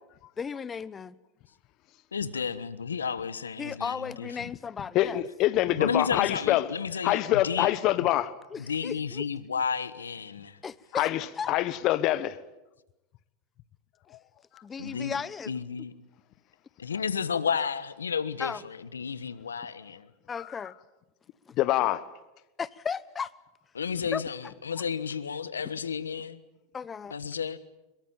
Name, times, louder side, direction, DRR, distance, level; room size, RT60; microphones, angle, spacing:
voice 1, 0.4-1.2 3.6-5.2 8.5-9.2 10.6-11.5 14.6-15.5 18.4-18.6 20.3-20.7 22.6-23.3 24.1-24.2 26.7-27.1, left 6 dB, 25° left, 1.0 m, -35 dB
voice 2, 2.1-4.5 5.8-8.1 8.6-10.6 14.8-15.2 15.5-15.9 16.8-20.1 23.7-26.4 27.1-27.6, left 6 dB, 90° left, 1.3 m, -32 dB
voice 3, 4.9-6.7 7.0-8.4 10.9-12.4 20.4-20.5 21.6-22.1, left 14 dB, 50° left, 1.2 m, -25 dB
22.5 x 22.0 x 9.0 m
hypercardioid pair, 95°, 0 cm